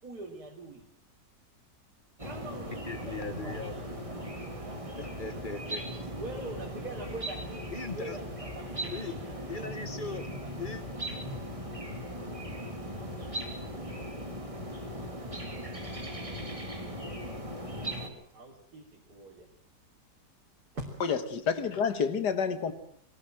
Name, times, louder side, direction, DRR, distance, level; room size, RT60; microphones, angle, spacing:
voice 1, 0.0-0.8 2.2-4.8 6.2-9.0 9.9-10.6 18.3-19.5 20.7-20.9, right 2 dB, 70° right, 3.6 m, -44 dB
sound 1, 2.2-18.1, equal, 20° right, 2.6 m, -38 dB
sound 2, 2.8-9.9, right 1 dB, 45° right, 4.7 m, -52 dB
voice 2, 2.9-4.0 5.0-6.1 7.7-8.2 8.9-9.2 9.5-10.3 10.6-10.8, left 4 dB, 35° left, 1.1 m, -39 dB
voice 3, 21.0-22.7, left 6 dB, 85° left, 2.1 m, -29 dB
22.0 x 17.5 x 7.6 m
omnidirectional pair, 1.7 m